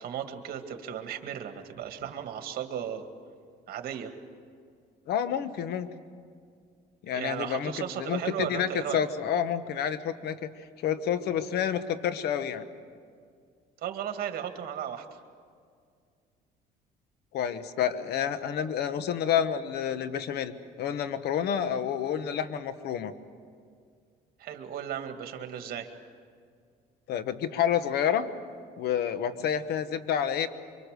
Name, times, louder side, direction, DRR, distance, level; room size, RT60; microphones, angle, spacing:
voice 1, 0.0-3.1 3.7-4.1 7.1-9.1 13.8-15.0 24.4-25.9, right 9 dB, 65° right, 6 dB, 2.1 m, -35 dB
voice 2, 5.1-5.9 7.0-12.7 17.3-23.1 27.1-28.3 28.8-30.5, left 9 dB, 75° left, 12 dB, 1.2 m, -29 dB
25.0 x 24.5 x 6.7 m, 2.2 s
cardioid pair, 110°, 17 cm